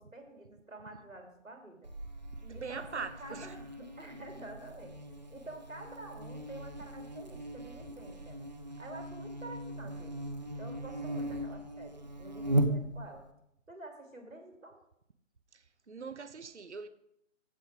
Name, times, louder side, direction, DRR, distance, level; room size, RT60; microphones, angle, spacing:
voice 1, 0.0-1.9 2.5-4.9 5.3-8.4 8.8-10.2 10.5-13.2 13.7-14.8, right 2 dB, 85° right, 3.0 m, -49 dB
Buzz, 1.8-13.2, right 1 dB, 35° right, 0.7 m, -38 dB
voice 2, 2.4-3.5 15.5-16.9, right 5 dB, 60° right, 0.8 m, -42 dB
15.5 x 5.4 x 4.9 m
figure-of-eight pair, 160°, 39 cm